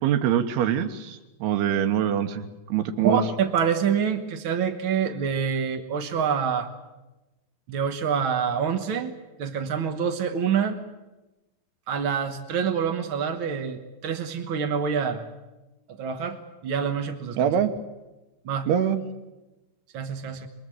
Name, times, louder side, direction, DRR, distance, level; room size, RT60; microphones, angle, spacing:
voice 1, 0.0-3.2 17.4-17.7 18.7-19.0, right 9 dB, 85° right, 8 dB, 3.2 m, -24 dB
voice 2, 3.0-6.7 7.7-9.1 9.4-10.8 11.9-15.2 15.9-17.5 18.4-18.7 19.9-20.5, right 7 dB, 70° right, 6 dB, 1.2 m, -26 dB
25.5 x 23.5 x 7.7 m, 1.1 s
omnidirectional pair, 4.4 m